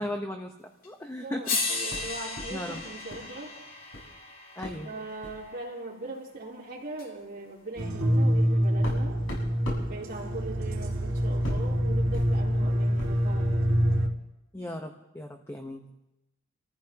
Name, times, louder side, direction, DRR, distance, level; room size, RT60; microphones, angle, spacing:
voice 1, 0.0-1.4 2.5-2.8 4.6-4.9 14.5-15.9, left 1 dB, 15° left, 3 dB, 1.0 m, -36 dB
sound 1, 0.8-0.9 1.4-5.6 7.0-7.1, left 3 dB, 45° left, 3.2 m, -35 dB
voice 2, 1.2-3.6 4.8-9.2 9.8-13.7, right 2 dB, 45° right, -12 dB, 3.7 m, -40 dB
sound 2, 1.9-3.3 3.6-4.1 4.6-4.8 5.2-5.4 6.3-6.4 6.8-6.9 7.4-13.3, left 1 dB, 70° left, 7.6 m, -40 dB
sound 3, 7.8-14.1, equal, 80° right, 2.2 m, -26 dB
29.5 x 15.0 x 3.0 m, 0.92 s
head